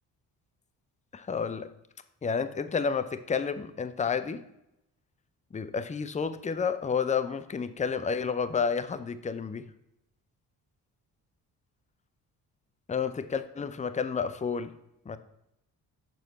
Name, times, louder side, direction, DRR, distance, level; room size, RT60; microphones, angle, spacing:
voice 1, 1.1-1.7 2.2-4.4 5.5-9.6 12.9-14.7 15.1-15.2, left 6 dB, 15° left, 12 dB, 0.6 m, -30 dB
6.8 x 6.0 x 4.2 m, 0.86 s
hypercardioid pair, 45°, 48 cm